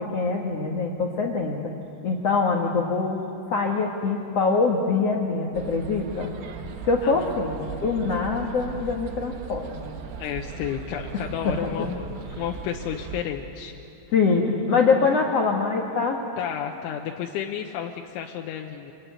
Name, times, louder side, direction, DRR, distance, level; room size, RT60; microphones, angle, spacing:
voice 1, 0.0-1.6 2.0-3.2 3.5-6.3 6.8-9.9 11.4-11.5 11.8-11.9 14.1-16.2, left 4 dB, 60° left, 0 dB, 1.7 m, -24 dB
sound 1, 5.5-13.2, right 6 dB, 85° right, 4.1 m, -38 dB
voice 2, 10.2-12.0 12.4-13.7 16.4-18.9, left 9 dB, 80° left, 2 dB, 3.3 m, -31 dB
26.5 x 24.0 x 9.4 m, 2.9 s
omnidirectional pair, 5.6 m